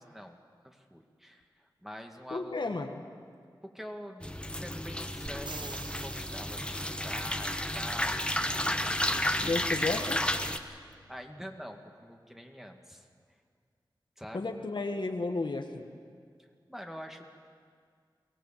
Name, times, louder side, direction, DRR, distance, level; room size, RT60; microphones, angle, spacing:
voice 1, 0.0-2.7 3.7-9.8 10.7-13.1 14.2-14.5 16.7-17.2, equal, 5° right, 3 dB, 2.1 m, -46 dB
voice 2, 2.3-3.0 9.4-10.2 14.3-15.9, left 3 dB, 65° left, 4 dB, 1.5 m, -33 dB
sound 1, 4.2-10.6, left 1 dB, 10° left, 1.1 m, -32 dB
sound 2, 5.3-7.1 10.9-11.0, right 4 dB, 60° right, 1.0 m, -45 dB
23.5 x 17.0 x 7.4 m, 2.1 s
wide cardioid pair, 50°, 8 cm